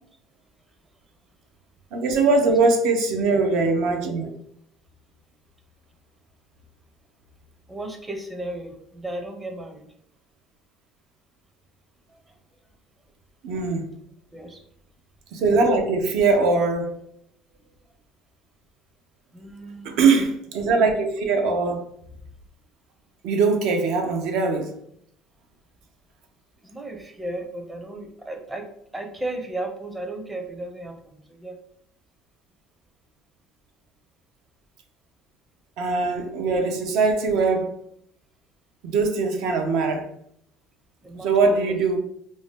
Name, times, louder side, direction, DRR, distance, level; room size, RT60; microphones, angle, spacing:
voice 1, 1.9-4.3 13.4-13.9 15.3-16.9 19.8-21.9 23.2-24.7 35.8-37.7 38.8-40.1 41.2-42.0, right 4 dB, 75° right, 4 dB, 0.5 m, -21 dB
voice 2, 7.7-9.9 12.1-12.3 14.3-14.6 19.3-20.0 26.6-31.6 41.0-41.7, right 1 dB, 15° right, 5 dB, 0.5 m, -35 dB
2.6 x 2.1 x 3.3 m, 0.70 s
cardioid pair, 105°, 0 cm